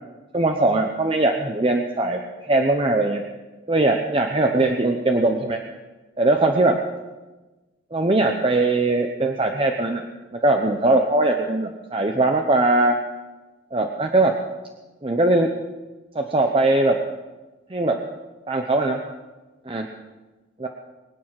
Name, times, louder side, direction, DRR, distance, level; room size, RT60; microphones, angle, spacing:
voice 1, 0.3-3.2 3.7-5.6 6.2-6.8 7.9-10.0 10.3-13.0 13.7-14.4 15.0-15.5 16.1-17.0 17.7-18.0 18.5-19.0 19.7-19.9 20.6-20.7, right 2 dB, 30° right, 3 dB, 0.9 m, -20 dB
22.5 x 9.2 x 5.9 m, 1.2 s
head